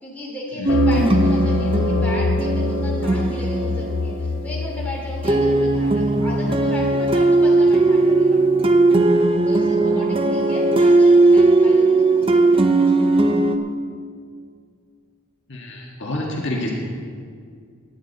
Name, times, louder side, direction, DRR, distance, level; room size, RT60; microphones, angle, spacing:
voice 1, 0.0-8.4 9.4-13.4, left 1 dB, 5° left, -5 dB, 2.6 m, -35 dB
sound 1, 0.6-4.7 5.2-13.6, right 2 dB, 25° right, 0.6 m, -17 dB
sound 2, 0.7-7.2, left 4 dB, 70° left, 0.3 m, -26 dB
voice 2, 15.5-16.7, left 1 dB, 55° left, -2 dB, 1.6 m, -28 dB
17.5 x 10.5 x 4.0 m, 2.2 s
head